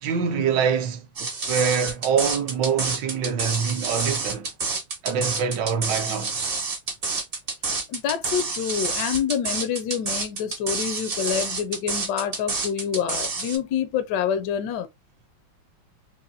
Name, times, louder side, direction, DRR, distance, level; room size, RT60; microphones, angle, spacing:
voice 1, 0.0-4.5 5.0-6.5, right 6 dB, 70° right, 1.2 m, -25 dB
sound 1, 1.2-13.6, right 4 dB, 45° right, 0.7 m, -28 dB
voice 2, 7.9-14.9, left 8 dB, 75° left, 1.1 m, -27 dB
4.0 x 2.6 x 2.6 m
omnidirectional pair, 2.2 m